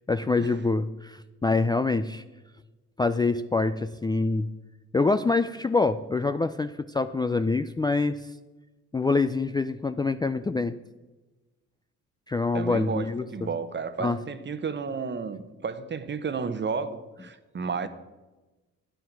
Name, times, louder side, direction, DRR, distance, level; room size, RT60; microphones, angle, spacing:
voice 1, 0.1-2.2 3.0-4.5 4.9-8.2 8.9-10.8 12.3-13.5 14.0-14.2, left 3 dB, 15° left, 0.4 m, -25 dB
voice 2, 12.5-17.9, right 5 dB, 35° right, 1.0 m, -32 dB
12.5 x 9.4 x 4.6 m
cardioid pair, 90°, 30 cm